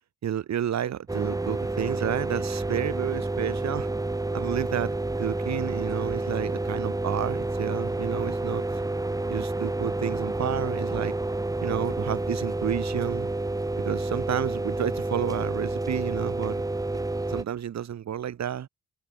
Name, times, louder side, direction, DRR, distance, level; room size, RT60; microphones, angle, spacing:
voice 1, 0.2-3.9 4.3-8.6 9.3-11.1 11.6-13.3 13.8-16.6 17.3-18.7, right 10 dB, 65° right, 7.5 m, -31 dB
sound 1, 1.1-17.4, right 2 dB, 10° right, 3.3 m, -29 dB
wide cardioid pair, 170°, 30 cm